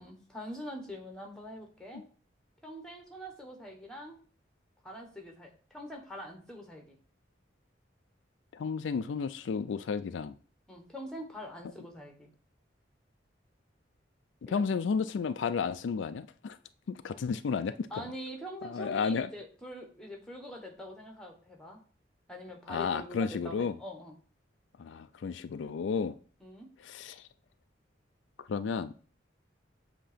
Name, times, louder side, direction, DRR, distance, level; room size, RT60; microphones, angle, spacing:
voice 1, 0.0-2.1 2.6-4.2 4.8-7.0 10.7-12.3 14.5-14.7 17.9-21.8 22.3-24.1 26.4-26.7, equal, 5° left, 1.2 m, -44 dB
voice 2, 8.5-10.3 14.4-16.6 16.9-17.9 18.6-19.3 22.7-23.7 24.8-26.1 26.8-27.2 28.5-28.9, left 5 dB, 80° left, 0.4 m, -32 dB
7.7 x 2.9 x 5.0 m
head